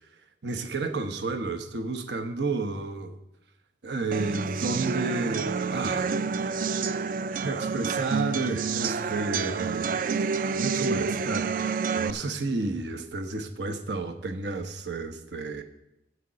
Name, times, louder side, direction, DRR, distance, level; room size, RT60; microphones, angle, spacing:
voice 1, 0.4-3.2 3.8-6.1 7.4-15.6, right 3 dB, 85° right, 7 dB, 1.0 m, -31 dB
sound 1, 4.1-12.1, right 5 dB, 50° right, 0.4 m, -28 dB
8.4 x 6.6 x 7.5 m, 0.83 s
head